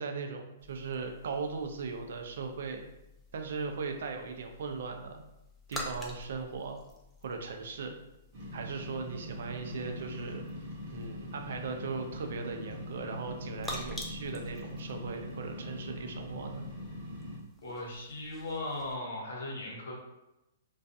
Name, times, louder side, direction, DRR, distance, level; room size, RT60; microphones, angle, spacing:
voice 1, 0.0-2.9 3.3-5.2 5.7-6.8 7.2-7.9 8.5-10.4 10.9-16.7, right 4 dB, 70° right, 4 dB, 0.4 m, -38 dB
sound 1, 0.6-19.0, left 1 dB, 5° left, 0.3 m, -49 dB
sound 2, 8.3-17.4, left 1 dB, 50° right, 0.7 m, -42 dB
voice 2, 17.6-19.9, left 2 dB, 75° left, -2 dB, 0.9 m, -38 dB
2.3 x 2.3 x 2.6 m, 0.93 s
hypercardioid pair, 155°, 0 cm